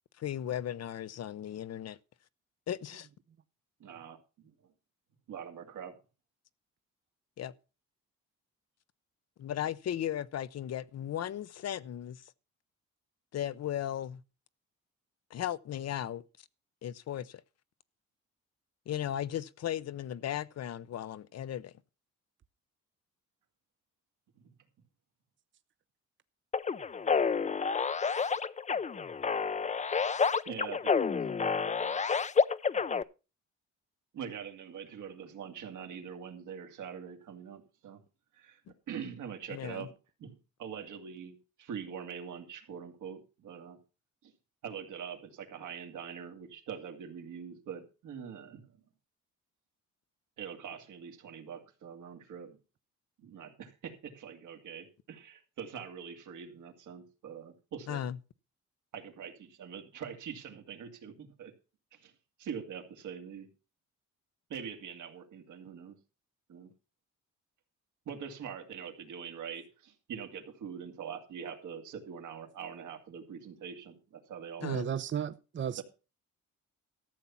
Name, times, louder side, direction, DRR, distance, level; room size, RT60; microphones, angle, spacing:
voice 1, 0.2-2.0 2.7-3.1 7.4-7.5 9.4-12.2 13.3-14.2 15.3-16.2 16.8-17.4 18.9-21.7 39.5-39.9 57.9-58.2 74.6-74.9, left 11 dB, 55° left, 0.7 m, -36 dB
voice 2, 3.8-4.5 5.3-6.0 24.4-24.5 27.8-28.0 30.5-31.2 34.1-38.0 38.3-38.6 38.9-39.9 40.2-43.8 44.2-44.3 44.6-48.7 50.4-52.6 53.2-58.0 58.9-61.5 61.9-62.1 62.4-63.5 64.5-66.0 66.5-66.7 68.1-74.8 75.8-75.9, right 7 dB, 75° right, 2.4 m, -44 dB
sound 1, 26.5-33.0, left 5 dB, 25° left, 0.6 m, -29 dB
voice 3, 74.6-75.8, right 8 dB, 40° right, 0.7 m, -34 dB
13.5 x 7.2 x 5.7 m
cardioid pair, 90°, 30 cm